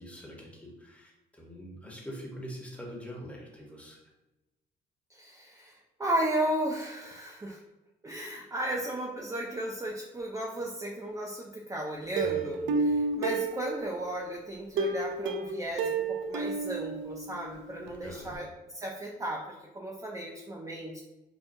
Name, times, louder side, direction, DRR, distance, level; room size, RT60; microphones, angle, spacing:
voice 1, 0.0-4.0 12.1-13.0 18.0-18.5, equal, 5° left, -2 dB, 1.0 m, -44 dB
voice 2, 5.1-7.6 8.0-12.6 12.8-18.5 18.7-21.0, right 1 dB, 15° right, -1 dB, 0.4 m, -35 dB
Plucked string instrument, 12.2-14.1 14.8-17.6 17.9-18.0 18.3-18.4, right 3 dB, 80° right, 0.5 m, -31 dB
5.2 x 2.2 x 2.6 m, 1.0 s
cardioid pair, 90°, 20 cm